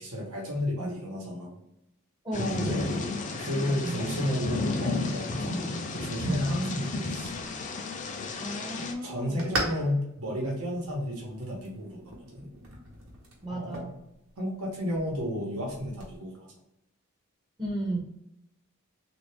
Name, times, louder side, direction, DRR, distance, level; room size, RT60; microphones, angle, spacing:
voice 1, 0.0-1.6 2.5-3.0 3.4-7.3 9.0-12.0 12.3-12.5 13.5-13.9 14.4-16.5, left 1 dB, 90° right, -2 dB, 1.1 m, -32 dB
voice 2, 2.2-3.2 3.5-4.1 5.4-5.7 6.2-6.5 8.4-9.4 13.4-13.9 17.6-18.0, right 1 dB, 20° right, -2 dB, 0.6 m, -35 dB
Thunder / Rain, 2.3-8.9, left 3 dB, 35° left, 0.4 m, -32 dB
sound 1, 7.2-16.2, right 1 dB, 65° right, 1.0 m, -41 dB
3.3 x 2.5 x 3.4 m, 0.84 s
head